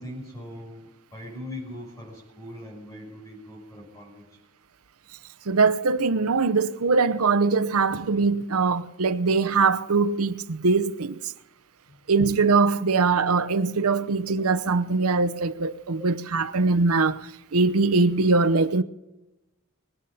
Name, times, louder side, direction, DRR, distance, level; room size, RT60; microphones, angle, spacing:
voice 1, 0.0-4.4 11.9-12.0, left 1 dB, 15° left, 5.8 m, -41 dB
voice 2, 5.5-11.3 12.1-17.2 17.5-18.8, right 4 dB, 85° right, 0.8 m, -22 dB
23.5 x 9.2 x 5.5 m
head